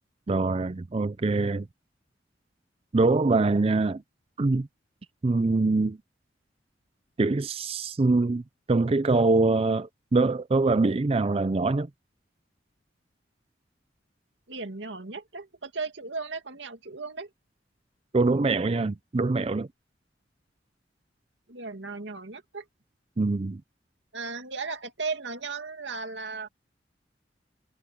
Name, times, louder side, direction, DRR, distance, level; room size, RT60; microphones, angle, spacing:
voice 1, 0.3-1.7 2.9-4.0 4.4-4.7 5.2-6.0 7.2-8.4 8.7-11.9 18.1-19.7 23.2-23.6, right 3 dB, 30° right, 0.5 m, -24 dB
voice 2, 14.5-17.3 21.5-22.6 24.1-26.5, right 4 dB, 90° right, 2.4 m, -36 dB
head